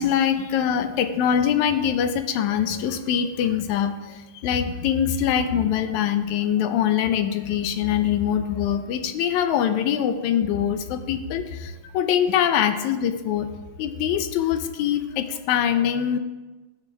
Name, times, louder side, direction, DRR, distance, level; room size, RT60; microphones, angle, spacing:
voice 1, 0.0-13.5 13.8-16.2, left 9 dB, 85° left, 9 dB, 2.0 m, -23 dB
14.0 x 9.7 x 2.4 m, 1.2 s
omnidirectional pair, 3.3 m